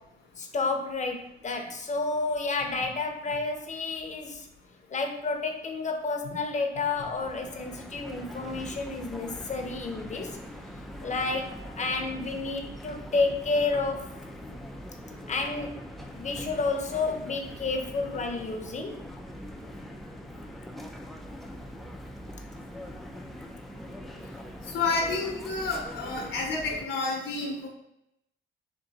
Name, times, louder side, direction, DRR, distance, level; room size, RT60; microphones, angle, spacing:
voice 1, 0.4-4.5 4.9-10.4 11.0-14.1 15.3-15.8 16.1-19.0, left 3 dB, 35° left, 3 dB, 0.7 m, -30 dB
sound 1, 6.9-26.9, equal, ahead, 0.4 m, -42 dB
voice 2, 24.7-27.7, left 3 dB, 75° left, -1 dB, 0.8 m, -29 dB
3.8 x 2.5 x 4.0 m, 0.83 s
cardioid pair, 90°, 20 cm